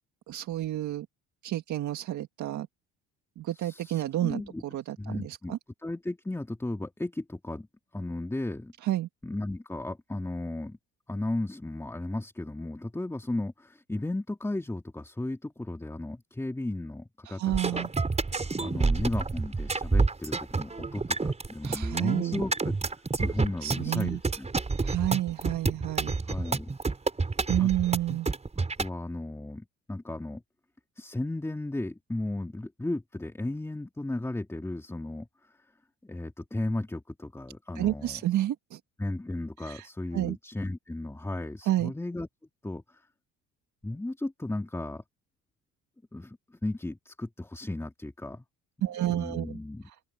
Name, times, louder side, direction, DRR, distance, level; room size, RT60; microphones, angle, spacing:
voice 1, 0.3-1.1 1.4-2.7 3.4-4.4 4.7-5.6 8.8-9.1 17.3-17.9 21.6-22.4 23.6-24.2 24.8-26.1 27.5-28.3 37.8-38.8 39.6-39.9 40.1-40.4 41.7-41.9 48.8-49.6, right 14 dB, 60° right, 1.8 m, -30 dB
voice 2, 3.5-4.6 5.0-5.6 5.8-7.7 7.9-8.7 9.2-10.8 11.1-17.9 18.6-24.5 26.3-26.7 27.6-27.7 28.6-30.4 31.0-35.6 36.0-38.2 39.0-42.3 42.6-43.0 43.8-45.0 46.1-46.4 46.6-48.4 48.8-49.9, left 2 dB, 10° left, 2.7 m, -35 dB
sound 1, 17.5-28.9, right 3 dB, 20° right, 5.9 m, -28 dB
open air
cardioid pair, 100°, 33 cm